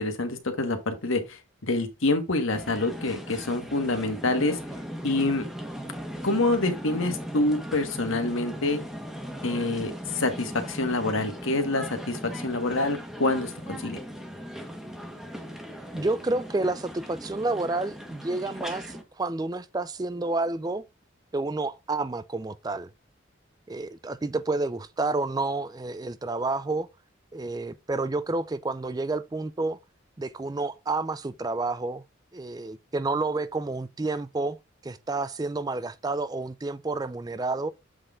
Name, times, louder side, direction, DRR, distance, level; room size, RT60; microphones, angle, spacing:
voice 1, 0.0-4.6 5.0-5.4 6.2-8.8 9.4-14.0, left 2 dB, 80° left, 1.6 m, -27 dB
Tokyo - Ameyoko, 2.5-19.0, equal, ahead, 1.2 m, -38 dB
voice 2, 15.9-20.8 21.3-22.9 23.7-26.9 27.3-29.8 30.2-32.0 32.3-34.6 34.8-37.7, right 2 dB, 20° right, 0.4 m, -29 dB
7.7 x 4.1 x 3.8 m
head